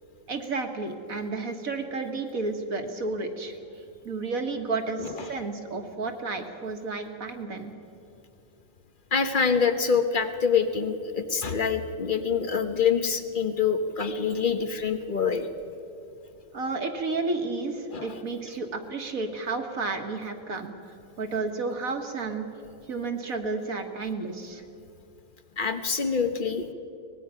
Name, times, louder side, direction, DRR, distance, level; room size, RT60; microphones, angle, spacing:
voice 1, 0.3-3.5 4.1-7.7 16.5-22.5 22.9-24.6, right 3 dB, 45° right, 5 dB, 1.8 m, -32 dB
voice 2, 9.1-15.5 17.9-18.2 25.6-26.7, left 6 dB, 35° left, 8 dB, 0.8 m, -25 dB
24.0 x 19.5 x 5.7 m, 2.8 s
omnidirectional pair, 2.1 m